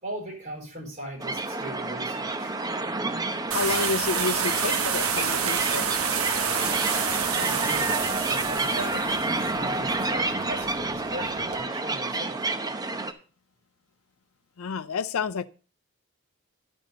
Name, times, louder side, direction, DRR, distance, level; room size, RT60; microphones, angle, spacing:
voice 1, 0.0-2.6 7.1-9.1 9.4-12.4, right 1 dB, 35° right, 4.1 m, -39 dB
sound 1, 1.2-13.1, right 3 dB, 20° right, 0.7 m, -29 dB
voice 2, 3.5-5.9 14.6-15.5, left 5 dB, 70° left, 0.5 m, -29 dB
sound 2, 3.5-11.6, right 7 dB, 70° right, 1.1 m, -29 dB
11.0 x 5.4 x 5.1 m
head